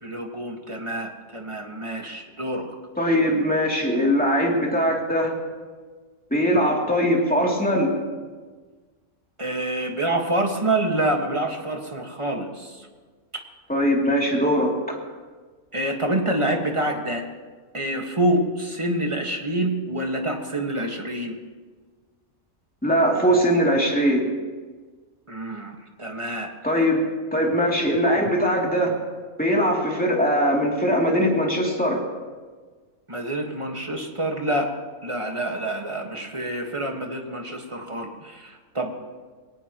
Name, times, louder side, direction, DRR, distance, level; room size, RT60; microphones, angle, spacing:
voice 1, 0.0-2.7 9.4-12.9 15.7-17.2 17.7-21.4 25.3-26.9 33.1-34.7 35.0-38.9, right 1 dB, 20° right, 2 dB, 1.6 m, -27 dB
voice 2, 3.0-5.3 6.3-7.9 13.7-15.0 22.8-24.3 26.6-27.0 27.3-29.0 29.4-32.0, equal, 5° left, -2 dB, 2.7 m, -21 dB
21.5 x 18.5 x 3.0 m, 1.4 s
omnidirectional pair, 1.4 m